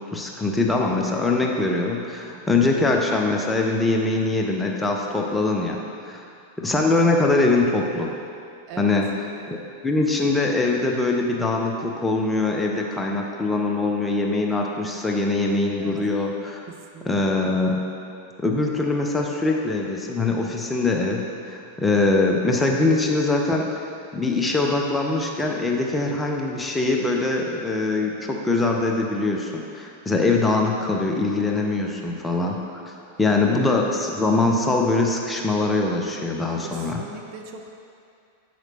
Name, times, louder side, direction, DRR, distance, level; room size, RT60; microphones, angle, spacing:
voice 1, 0.1-5.8 6.0-6.2 6.6-8.1 8.8-9.1 9.5-16.6 17.0-17.8 18.4-21.2 21.4-23.8 24.1-32.8 33.2-37.0, left 3 dB, 10° left, 0 dB, 0.7 m, -22 dB
voice 2, 6.1-6.4 8.7-9.0 15.8-16.0 16.7-17.1 19.2-19.4 31.8-32.0 33.0-33.5 36.6-37.7, right 5 dB, 45° right, 2 dB, 0.5 m, -41 dB
7.8 x 5.9 x 2.8 m, 2.4 s
figure-of-eight pair, 90°, 0 cm